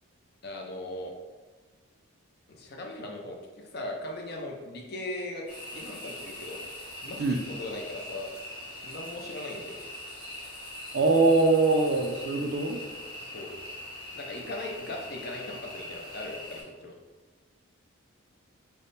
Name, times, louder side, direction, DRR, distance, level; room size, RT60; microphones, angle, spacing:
voice 1, 0.4-1.1 2.5-3.4 3.7-5.5 5.7-8.3 8.8-9.8 13.2-13.5 14.1-17.0, left 1 dB, 50° left, 1 dB, 0.5 m, -39 dB
sound 1, 5.5-16.6, left 1 dB, 25° left, 1.0 m, -42 dB
voice 2, 10.9-12.8, right 3 dB, 55° right, 4 dB, 0.4 m, -23 dB
3.4 x 2.1 x 4.1 m, 1.3 s
head